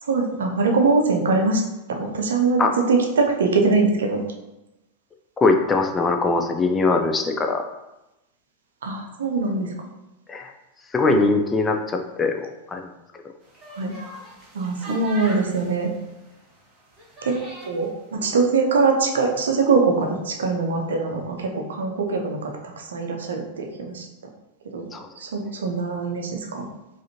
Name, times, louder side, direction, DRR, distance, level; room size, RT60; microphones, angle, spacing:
voice 1, 0.0-1.6 1.9-2.6 2.9-4.2 8.8-9.9 11.1-11.3 13.7-13.9 14.5-15.9 17.2-17.4 17.6-24.1 24.7-24.9 25.2-26.7, right 4 dB, 65° right, 2 dB, 0.6 m, -22 dB
voice 2, 5.4-7.6 10.3-10.5 10.9-12.9 24.9-25.1, left 3 dB, 15° left, 4 dB, 0.4 m, -21 dB
sound 1, 13.4-17.9, right 1 dB, 20° right, 1.2 m, -42 dB
4.9 x 2.5 x 2.8 m, 0.95 s
figure-of-eight pair, 90°, 0 cm